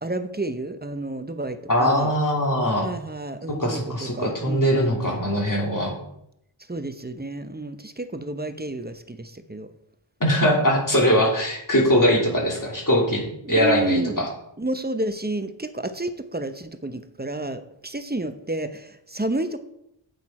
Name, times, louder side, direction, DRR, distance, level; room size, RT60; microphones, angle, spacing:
voice 1, 0.0-2.1 2.8-5.2 6.7-9.7 13.4-14.3 14.6-19.6, right 2 dB, 20° right, 9 dB, 0.8 m, -30 dB
voice 2, 1.7-2.9 3.6-5.9 10.2-14.3, equal, 40° left, -2 dB, 2.8 m, -21 dB
8.9 x 8.2 x 4.3 m, 0.77 s
wide cardioid pair, 60°, 49 cm